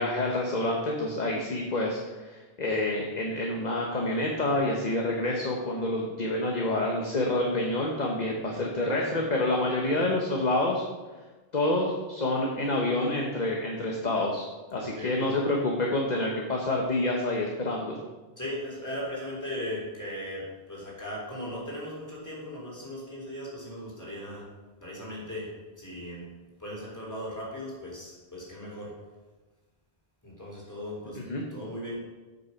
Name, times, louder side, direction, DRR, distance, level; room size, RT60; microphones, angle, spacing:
voice 1, 0.0-10.8 11.5-14.4 14.7-18.0 31.3-31.4, left 2 dB, 40° left, -1 dB, 1.2 m, -28 dB
voice 2, 14.8-15.3 18.4-24.5 24.8-26.3 26.6-29.0 30.2-31.2 31.5-32.0, left 1 dB, 15° left, -6 dB, 3.4 m, -38 dB
8.2 x 6.8 x 5.7 m, 1.2 s
omnidirectional pair, 1.1 m